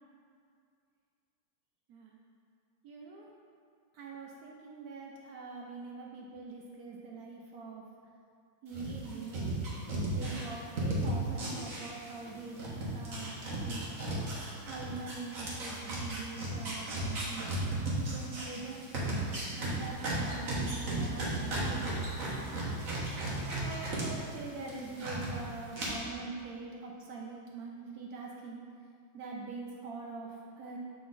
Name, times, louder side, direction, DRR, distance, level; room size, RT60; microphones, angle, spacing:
voice 1, 2.8-3.3 3.9-7.8 8.6-9.6 10.1-13.9 14.6-18.9 19.6-22.2 23.3-28.6 29.1-30.8, right 4 dB, 75° right, -1 dB, 0.8 m, -44 dB
sound 1, 8.7-12.3 12.6-24.0 24.4-25.3 25.7-25.9, right 1 dB, 45° right, 1.5 m, -35 dB
7.3 x 3.9 x 3.9 m, 2.3 s
omnidirectional pair, 2.2 m